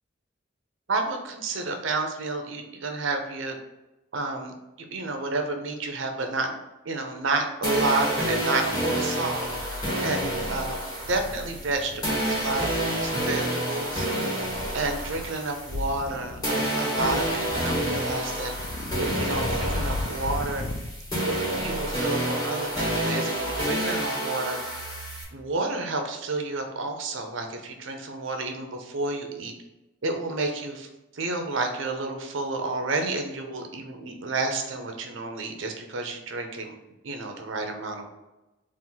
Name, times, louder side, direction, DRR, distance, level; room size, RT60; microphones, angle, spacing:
voice 1, 0.9-3.6 4.1-4.5 4.9-6.6 6.8-9.5 10.0-10.8 11.1-14.1 14.7-18.5 19.0-20.6 21.2-24.6 25.3-29.5 30.0-30.9 31.1-36.8 37.0-38.1, right 3 dB, 80° right, 4 dB, 0.7 m, -30 dB
sound 1, 7.3-7.4 7.7-8.8 9.2-9.7 10.1-10.7 11.0-12.7 13.0-13.5 14.5-15.3 15.6-16.6 17.0-18.2 18.5-20.9, left 2 dB, 40° left, 0.4 m, -36 dB
sound 2, 7.6-16.1 16.4-25.2, right 1 dB, 20° left, 1.4 m, -29 dB
4.3 x 2.6 x 3.9 m, 1.0 s
head